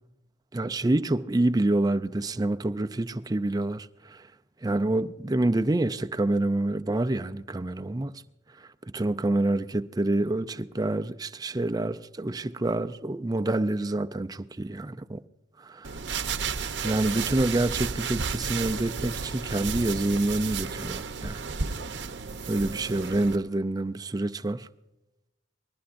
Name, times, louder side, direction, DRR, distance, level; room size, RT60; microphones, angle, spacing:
voice 1, 0.5-4.3 4.6-8.2 8.5-15.2 16.8-21.4 22.5-24.7, right 2 dB, 20° right, 0.4 m, -27 dB
sound 1, 15.8-23.4, right 5 dB, 70° right, 0.8 m, -33 dB
25.5 x 20.0 x 2.6 m
head